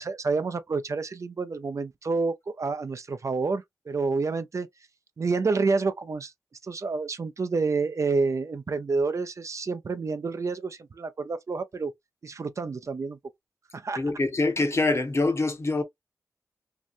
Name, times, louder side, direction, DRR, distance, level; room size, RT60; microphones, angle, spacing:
voice 1, 0.0-4.7 5.2-6.3 6.6-11.9 12.2-13.2 13.7-14.0, right 4 dB, 55° right, 0.4 m, -28 dB
voice 2, 14.0-15.8, left 3 dB, 45° left, 0.8 m, -25 dB
2.7 x 2.1 x 2.4 m
cardioid pair, 55°, 6 cm